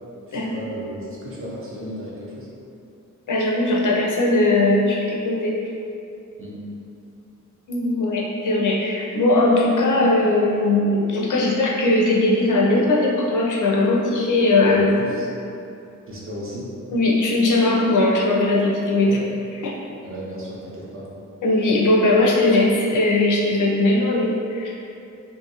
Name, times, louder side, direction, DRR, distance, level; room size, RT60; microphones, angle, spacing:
voice 1, 0.3-2.5 6.4-6.6 14.6-15.3 16.1-16.7 19.0-19.2 20.0-21.1, equal, 40° right, -6 dB, 0.6 m, -34 dB
voice 2, 3.3-5.6 7.7-15.1 16.9-19.2 19.6-19.7 21.4-24.7, left 2 dB, 70° left, -3 dB, 0.5 m, -19 dB
2.6 x 2.4 x 2.7 m, 2.6 s
wide cardioid pair, 135°, 32 cm